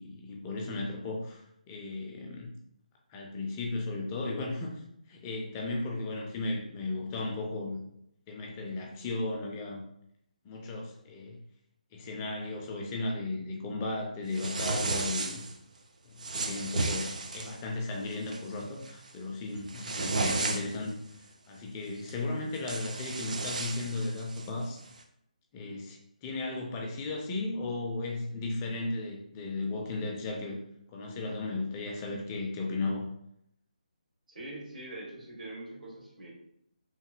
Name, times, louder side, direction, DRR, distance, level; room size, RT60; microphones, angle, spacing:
voice 1, 0.0-2.5 3.1-7.8 8.3-9.8 10.4-11.4 11.9-15.4 16.0-24.8 25.5-30.6 30.9-33.1, left 2 dB, 20° left, 0 dB, 0.3 m, -35 dB
sound 1, 14.3-15.5 16.2-17.6 18.1-18.4 18.8-19.1 19.5-20.9 22.1-22.2 22.5-24.5, right 3 dB, 60° right, 0.4 m, -33 dB
voice 2, 34.3-36.3, right 1 dB, 80° right, -4 dB, 1.3 m, -43 dB
2.9 x 2.5 x 2.4 m, 0.74 s
figure-of-eight pair, 150°, 4 cm